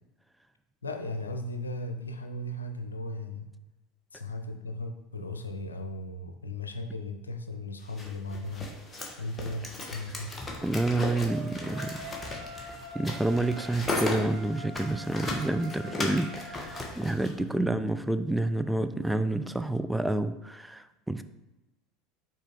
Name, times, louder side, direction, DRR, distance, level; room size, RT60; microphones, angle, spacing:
voice 1, 0.8-3.5 4.1-8.7 9.2-10.3 17.6-17.7, left 1 dB, 90° left, 6 dB, 0.6 m, -36 dB
sound 1, 7.9-17.3, left 2 dB, 20° left, 1.4 m, -36 dB
voice 2, 10.6-12.0 12.6-21.2, right 2 dB, 5° right, 10 dB, 0.4 m, -29 dB
sound 2, 11.1-16.9, right 1 dB, 55° right, 1.4 m, -44 dB
6.3 x 4.3 x 3.8 m, 1.0 s
hypercardioid pair, 75°, 0 cm